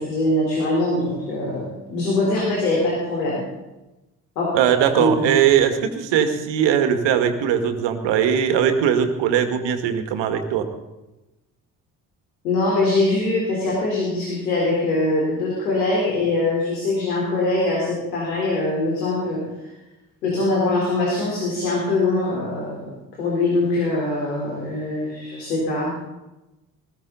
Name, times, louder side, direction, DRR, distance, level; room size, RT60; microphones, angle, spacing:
voice 1, 0.0-3.4 4.4-4.5 5.0-5.3 12.4-19.7 20.2-22.9 23.2-26.0, left 2 dB, 80° left, -4 dB, 4.1 m, -22 dB
voice 2, 4.5-10.7, right 8 dB, 60° right, 7 dB, 2.2 m, -20 dB
20.0 x 16.0 x 4.1 m, 1.0 s
figure-of-eight pair, 50°, 49 cm